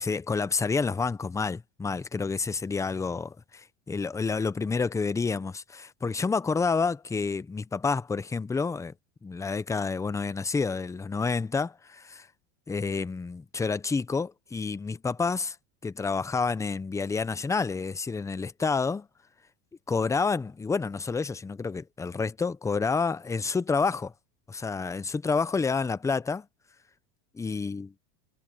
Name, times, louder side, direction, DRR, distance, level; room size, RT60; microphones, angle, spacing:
voice 1, 0.0-8.9 9.2-12.3 12.7-15.6 15.8-19.1 19.9-24.1 24.5-26.5 27.3-27.9, left 4 dB, 5° left, 0.5 m, -29 dB
supercardioid pair, 130°, 45 cm